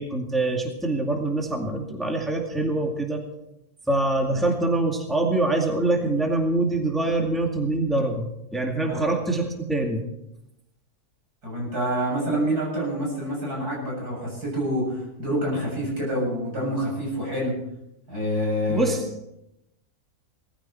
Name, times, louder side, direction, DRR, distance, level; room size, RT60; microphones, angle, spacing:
voice 1, 0.0-3.2 3.9-10.0 18.7-19.1, right 2 dB, ahead, 1 dB, 2.1 m, -24 dB
voice 2, 11.4-17.6 18.1-18.9, equal, 80° right, -3 dB, 8.0 m, -27 dB
19.5 x 14.5 x 4.4 m, 0.84 s
omnidirectional pair, 1.6 m